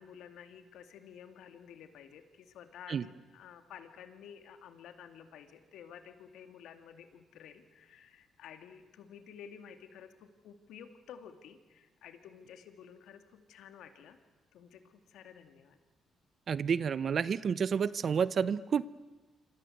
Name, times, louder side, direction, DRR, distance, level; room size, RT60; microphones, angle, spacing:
voice 1, 0.0-14.2 14.5-15.8, left 8 dB, 80° left, 8 dB, 2.3 m, -52 dB
voice 2, 16.5-18.8, right 6 dB, 50° right, 17 dB, 0.8 m, -30 dB
26.5 x 26.0 x 8.0 m, 1.3 s
cardioid pair, 90°, 0 cm